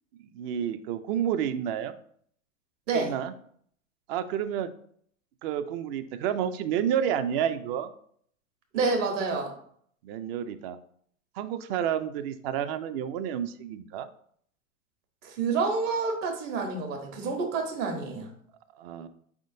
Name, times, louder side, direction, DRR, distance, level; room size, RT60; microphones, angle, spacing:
voice 1, 0.2-2.0 2.9-3.3 4.1-4.7 5.4-7.9 10.0-10.8 11.4-14.1 18.8-19.1, right 9 dB, 45° right, 11 dB, 0.4 m, -30 dB
voice 2, 8.7-9.5 15.2-18.3, right 4 dB, 60° right, 4 dB, 1.3 m, -28 dB
4.9 x 3.6 x 2.6 m, 0.63 s
hypercardioid pair, 110°, 42 cm